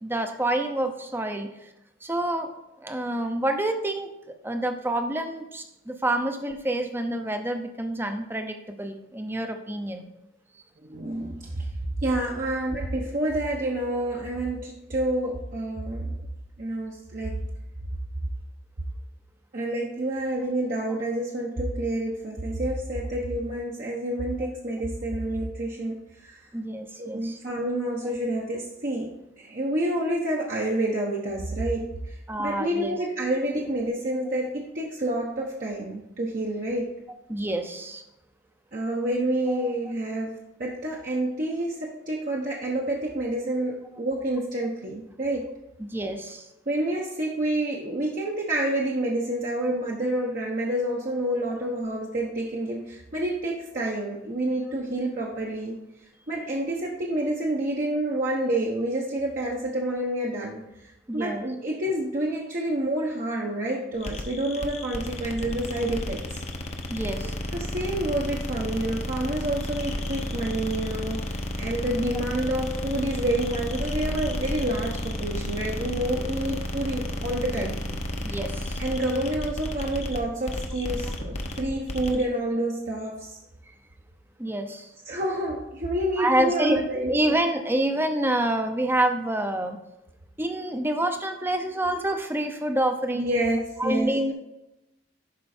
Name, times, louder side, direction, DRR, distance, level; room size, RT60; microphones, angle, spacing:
voice 1, 0.0-1.7 2.0-2.5 2.8-4.1 4.4-10.1 26.5-27.4 32.3-33.0 37.3-38.0 39.5-39.7 45.8-46.5 61.1-61.4 66.9-67.3 78.2-78.8 84.4-84.9 86.2-86.8 87.1-89.8 90.4-93.4 93.8-94.3, right 1 dB, 10° right, 6 dB, 0.7 m, -27 dB
voice 2, 10.8-11.7 12.0-16.2 16.6-17.4 19.5-26.5 27.0-36.9 38.7-45.5 46.7-55.7 56.3-66.4 67.5-77.8 78.8-83.4 85.1-87.2 93.1-94.1, right 1 dB, 45° right, -3 dB, 1.0 m, -28 dB
sound 1, 64.0-82.2, left 1 dB, 35° left, 0.8 m, -32 dB
11.5 x 4.5 x 4.3 m, 0.90 s
head